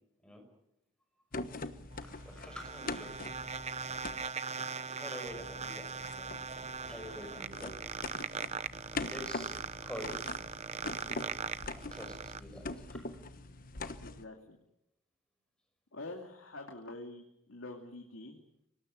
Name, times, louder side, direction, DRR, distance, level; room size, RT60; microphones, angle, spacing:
sound 1, 1.3-4.3 5.3-14.2, left 3 dB, 45° left, 1.2 m, -43 dB
sound 2, 1.9-12.4, right 5 dB, 35° right, 0.8 m, -40 dB
voice 1, 2.1-3.4 5.0-6.3 6.8-7.7 9.1-9.6 9.8-10.2 11.7-12.1 12.4-12.6 12.9-13.0, equal, 5° left, 4 dB, 5.9 m, -46 dB
voice 2, 14.0-14.6 15.9-18.4, left 2 dB, 90° left, 2 dB, 2.8 m, -46 dB
25.0 x 19.0 x 8.7 m, 0.84 s
head